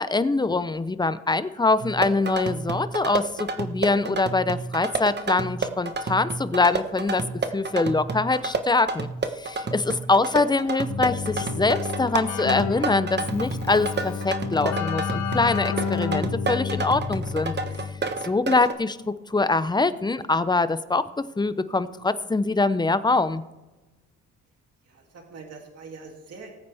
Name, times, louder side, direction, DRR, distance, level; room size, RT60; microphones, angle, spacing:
voice 1, 0.0-7.2 7.5-9.1 9.3-17.5 18.2-23.4, left 3 dB, 15° left, 14 dB, 0.6 m, -24 dB
sound 1, 1.8-18.7, right 4 dB, 35° right, 1.2 m, -30 dB
Keyboard (musical), 10.9-18.2, left 6 dB, 70° left, 1.1 m, -30 dB
voice 2, 24.8-26.5, right 4 dB, 55° right, 1 dB, 2.7 m, -44 dB
19.5 x 8.6 x 3.5 m, 1.1 s
cardioid pair, 90°, 30 cm